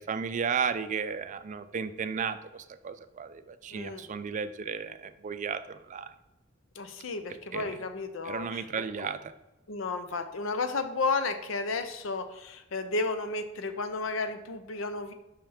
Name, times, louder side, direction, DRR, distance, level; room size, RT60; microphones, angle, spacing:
voice 1, 0.0-6.1 7.5-7.8 8.3-9.2, right 6 dB, 40° right, 11 dB, 0.4 m, -34 dB
voice 2, 3.7-4.1 6.8-8.7 9.0-9.1 9.7-15.1, left 3 dB, 75° left, 8 dB, 0.6 m, -33 dB
5.6 x 5.5 x 3.5 m, 1.0 s
head